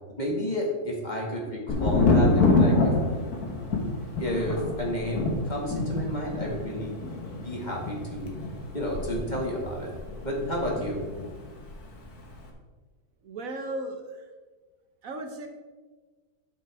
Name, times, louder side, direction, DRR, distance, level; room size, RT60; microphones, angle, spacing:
voice 1, 0.2-2.9 4.2-7.0 7.4-8.4 8.7-9.9 10.2-11.0, equal, 30° left, -2 dB, 2.1 m, -31 dB
Thunder, 1.7-11.3 11.6-12.3, left 3 dB, 80° left, 1.8 m, -26 dB
voice 2, 13.2-14.2 15.0-15.5, right 2 dB, 65° right, 4 dB, 1.3 m, -36 dB
12.5 x 6.7 x 3.5 m, 1.4 s
omnidirectional pair, 1.6 m